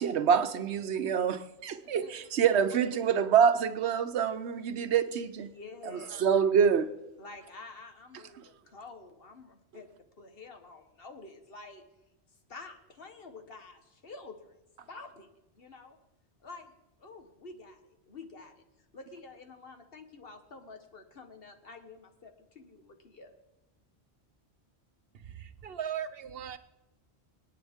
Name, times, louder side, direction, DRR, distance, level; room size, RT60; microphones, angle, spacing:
voice 1, 0.0-5.5 5.8-6.9, right 7 dB, 90° right, 1.1 m, -26 dB
voice 2, 5.4-6.2 7.2-9.9 10.2-11.8 12.5-14.5 14.9-15.3 15.5-16.0 16.4-16.7 17.0-18.6 18.9-23.3, left 3 dB, 60° left, 1.5 m, -49 dB
voice 3, 25.1-26.6, right 9 dB, 65° right, 0.9 m, -38 dB
26.0 x 9.4 x 3.6 m
omnidirectional pair, 1.1 m